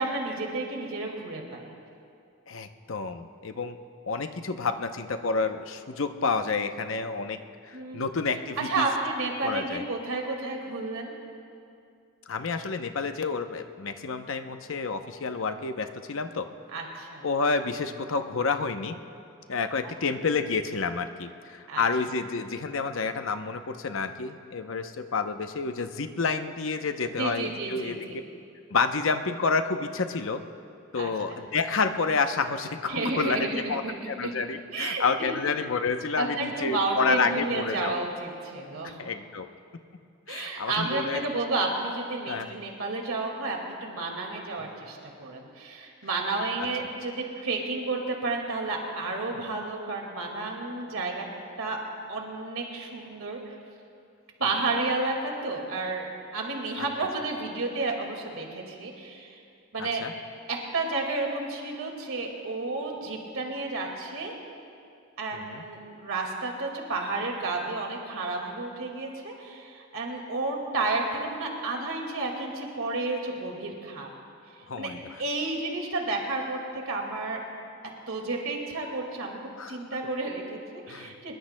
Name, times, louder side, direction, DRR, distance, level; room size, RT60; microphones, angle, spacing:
voice 1, 0.0-1.7 7.7-8.1 8.6-11.1 16.7-17.3 19.8-19.9 21.7-21.8 27.2-28.0 30.9-31.1 32.9-34.3 34.7-35.3 36.1-39.0 40.3-51.3 51.6-51.8 52.1-53.5 54.4-59.4 59.7-60.1 60.5-64.3 65.2-74.1 74.8-74.9 75.2-77.4 78.1-79.4 79.7-81.4, right 3 dB, 80° right, 1 dB, 2.0 m, -31 dB
voice 2, 2.5-3.8 4.1-7.4 7.6-8.9 9.4-9.8 12.3-16.5 17.2-18.9 19.5-28.1 28.7-30.4 30.9-33.4 33.7-38.1 39.0-39.5 40.3-41.2 42.3-42.5 59.8-60.1 65.3-65.6 74.7-75.0 79.6-79.8 80.9-81.1, left 4 dB, 70° left, 7 dB, 0.7 m, -29 dB
24.0 x 21.5 x 2.2 m, 2.5 s
head